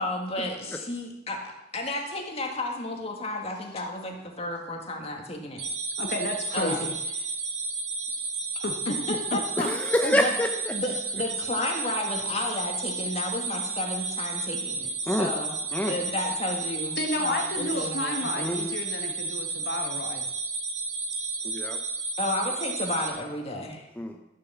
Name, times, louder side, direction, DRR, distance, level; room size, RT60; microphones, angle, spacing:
voice 1, 0.0-5.6 6.5-6.9 8.9-9.7 10.0-10.3 10.7-14.9 15.2-15.5 15.8-18.3 22.2-24.2, left 1 dB, 35° left, 2 dB, 2.2 m, -32 dB
sound 1, 5.6-23.1, right 3 dB, 40° right, 1.8 m, -32 dB
voice 2, 6.0-6.9 8.6-8.9 9.3-9.4 17.0-20.2, left 1 dB, 60° left, 3 dB, 1.7 m, -31 dB
voice 3, 9.6-10.8 15.1-15.3 15.7-16.0 18.4-18.8 21.4-21.8 24.0-24.1, left 1 dB, 10° left, 3 dB, 0.7 m, -27 dB
12.5 x 7.4 x 7.1 m, 0.92 s
head